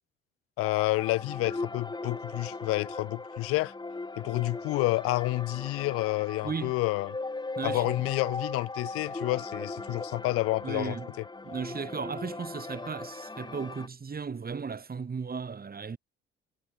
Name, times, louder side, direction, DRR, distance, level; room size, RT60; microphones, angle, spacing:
voice 1, 0.6-3.7 4.2-7.1 7.6-11.0, left 20 dB, 50° left, 0.5 m, -29 dB
sound 1, 0.6-13.9, left 3 dB, 15° left, 2.0 m, -39 dB
voice 2, 6.4-6.8 7.6-8.1 10.6-11.1 11.4-16.0, right 5 dB, 30° right, 5.9 m, -36 dB
figure-of-eight pair, 55°, 31 cm